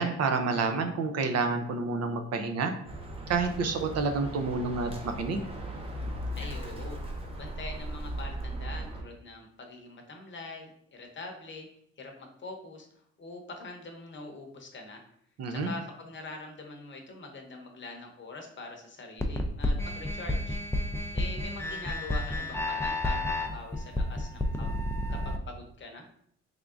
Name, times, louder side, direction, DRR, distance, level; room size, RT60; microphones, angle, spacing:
voice 1, 0.0-2.7 3.3-5.4 15.4-15.7, right 4 dB, 55° right, 7 dB, 0.5 m, -29 dB
Bird, 2.8-9.0, right 1 dB, 20° right, 0.7 m, -37 dB
voice 2, 6.4-11.7 12.0-15.0 15.5-20.6 21.1-24.7 25.1-26.1, left 3 dB, 40° left, 3 dB, 0.8 m, -44 dB
sound 1, 19.2-25.4, left 1 dB, 10° left, 0.3 m, -31 dB
3.6 x 3.3 x 2.4 m, 0.68 s
cardioid pair, 90°, 30 cm